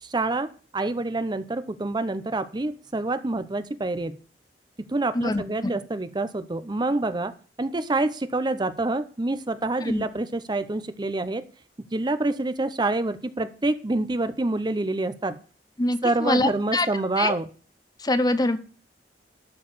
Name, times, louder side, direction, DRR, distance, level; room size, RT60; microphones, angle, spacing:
voice 1, 0.0-4.2 4.9-7.3 7.6-11.4 11.9-15.4 16.0-17.5, right 2 dB, 25° right, 12 dB, 0.7 m, -27 dB
voice 2, 5.1-5.7 9.8-10.1 15.8-16.9 17.2-17.3 18.0-18.6, left 2 dB, 25° left, 12 dB, 0.7 m, -24 dB
12.5 x 4.7 x 8.5 m, 0.38 s
head